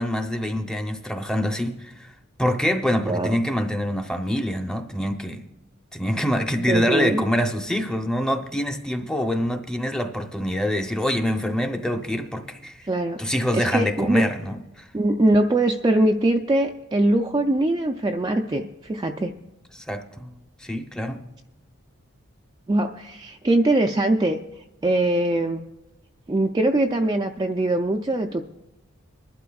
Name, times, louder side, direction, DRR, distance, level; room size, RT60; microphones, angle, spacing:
voice 1, 0.0-2.1 2.4-5.5 5.9-12.8 13.2-14.8 19.7-21.3, equal, 5° left, 0.7 m, -25 dB
voice 2, 3.0-3.4 6.7-7.2 12.8-13.2 13.5-14.3 14.9-19.3 22.7-24.4 24.8-25.6 26.3-28.4, right 1 dB, 20° right, 0.4 m, -22 dB
24.0 x 11.5 x 2.3 m
head